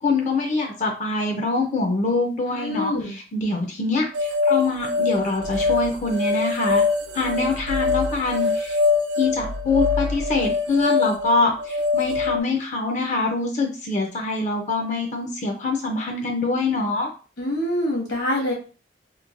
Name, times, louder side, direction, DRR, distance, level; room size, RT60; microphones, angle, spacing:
voice 1, 0.0-6.8 7.1-8.8 9.2-17.1, left 3 dB, 40° left, 1 dB, 0.5 m, -24 dB
voice 2, 2.5-3.1 17.4-18.5, left 1 dB, 70° left, -1 dB, 1.2 m, -25 dB
sound 1, 4.1-12.4, left 4 dB, 75° right, 0.4 m, -23 dB
3.0 x 2.1 x 2.5 m, 0.35 s
head